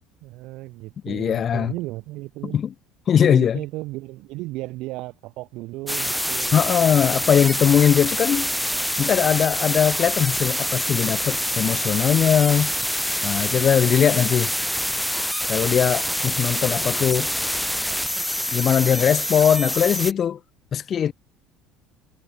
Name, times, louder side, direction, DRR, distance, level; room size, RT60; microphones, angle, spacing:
voice 1, 0.2-2.6 3.2-6.6, right 20 dB, 65° right, 5.1 m, -35 dB
voice 2, 1.0-1.7 2.4-2.7 3.1-3.6 6.5-8.5 9.0-12.7 13.2-14.5 15.5-17.3 18.5-20.4 20.7-21.1, left 8 dB, 45° left, 1.7 m, -20 dB
sound 1, 5.9-20.1, equal, ahead, 6.9 m, -26 dB
hypercardioid pair, 75°, 0 cm